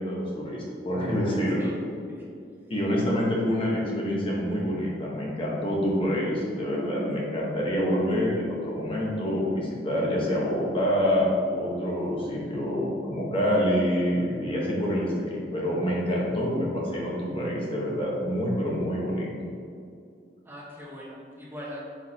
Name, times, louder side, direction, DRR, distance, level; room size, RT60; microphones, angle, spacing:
voice 1, 0.0-1.7 2.7-19.3, equal, 30° left, -4 dB, 1.2 m, -27 dB
voice 2, 20.4-21.8, equal, 15° right, -6 dB, 1.3 m, -41 dB
9.1 x 4.9 x 2.9 m, 2.4 s
head